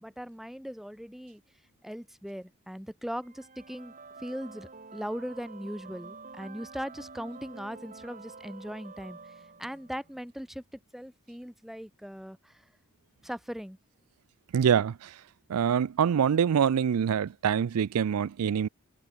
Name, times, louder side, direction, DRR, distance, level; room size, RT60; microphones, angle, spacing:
voice 1, 0.0-1.4 1.8-3.9 4.2-9.2 9.6-10.6 10.9-12.6 13.2-13.8, equal, ahead, 1.3 m, -39 dB
sound 1, 3.2-10.2, right 4 dB, 35° right, 5.3 m, -48 dB
voice 2, 14.5-15.1 15.5-18.7, right 8 dB, 75° right, 0.4 m, -25 dB
head